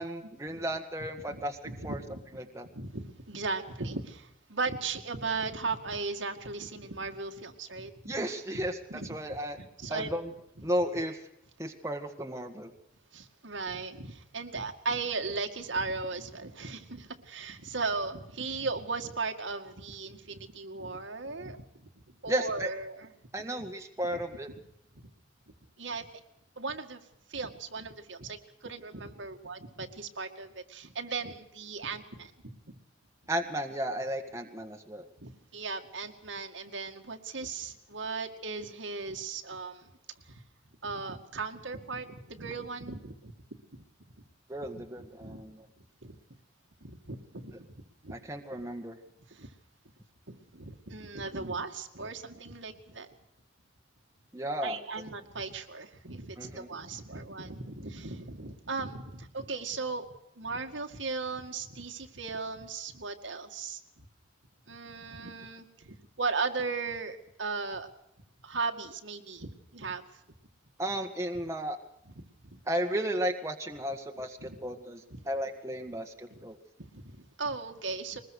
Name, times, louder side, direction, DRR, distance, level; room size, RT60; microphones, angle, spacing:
voice 1, 0.0-1.6 1.8-2.0 2.3-2.7 8.1-9.6 9.9-10.3 10.6-11.2 11.6-12.7 22.3-22.7 23.3-24.5 33.3-35.0 44.5-45.6 48.1-49.0 51.4-51.5 54.3-54.8 56.4-56.7 70.8-71.8 72.7-76.6, right 1 dB, 15° right, 4 dB, 1.7 m, -34 dB
voice 2, 1.3-2.2 2.7-8.2 8.5-10.1 10.6-10.7 13.1-23.1 24.1-24.2 25.0-25.1 25.8-26.2 26.6-27.0 27.3-32.3 35.2-39.9 40.3-40.4 40.8-43.3 43.7-43.8 44.7-44.8 45.2-45.4 46.0-46.2 46.8-48.2 49.3-49.5 50.3-53.1 54.6-60.1 60.4-63.8 64.7-67.9 68.4-70.0 72.2-72.6 74.4-74.6 75.1-75.2 76.3-76.4 76.8-78.2, right 4 dB, 75° right, 4 dB, 2.2 m, -37 dB
22.5 x 20.5 x 6.5 m, 0.79 s
head